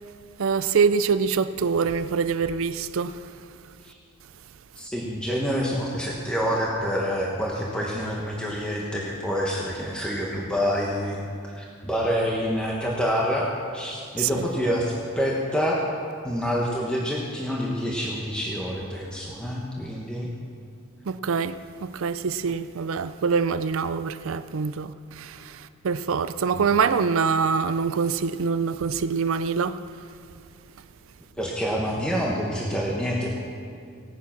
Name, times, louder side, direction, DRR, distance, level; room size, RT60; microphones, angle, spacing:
voice 1, 0.4-3.2 14.2-14.4 21.1-29.8, right 5 dB, 70° right, 0.4 m, -25 dB
voice 2, 4.8-11.2 11.6-15.8 16.2-20.3 26.5-26.7 31.4-33.3, equal, 5° left, 1.3 m, -27 dB
17.5 x 9.4 x 6.0 m
head